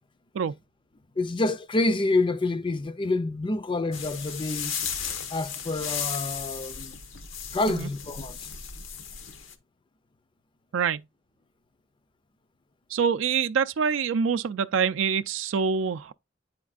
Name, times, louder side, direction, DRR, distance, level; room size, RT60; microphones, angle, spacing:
voice 1, 1.2-4.7 5.3-6.9 7.5-8.4, left 2 dB, 25° left, 0.5 m, -27 dB
sound 1, 3.9-9.5, left 7 dB, 80° left, 0.9 m, -35 dB
voice 2, 12.9-16.1, right 6 dB, 70° right, 0.4 m, -25 dB
9.3 x 4.3 x 2.4 m
head